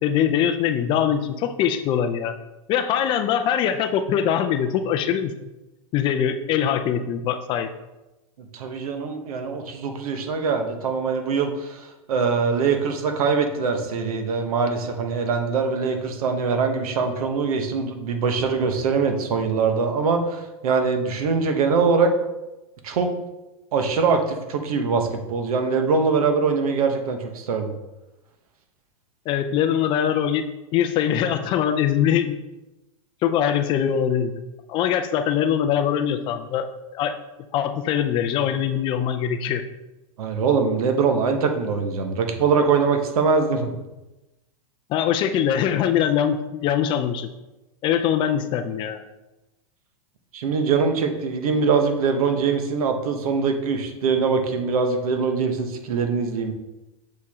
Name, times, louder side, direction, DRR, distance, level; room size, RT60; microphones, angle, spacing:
voice 1, 0.0-2.3 2.7-5.3 5.9-7.7 29.3-30.5 30.7-32.4 33.2-34.4 34.7-36.7 36.9-37.1 37.5-39.6 44.9-47.3 47.8-49.0, left 9 dB, 25° left, 8 dB, 0.4 m, -22 dB
voice 2, 8.5-22.1 22.8-23.1 23.7-27.7 40.2-43.7 50.3-56.5, right 5 dB, 75° right, 5 dB, 1.1 m, -23 dB
6.8 x 4.8 x 3.5 m, 1.0 s
supercardioid pair, 150°, 19 cm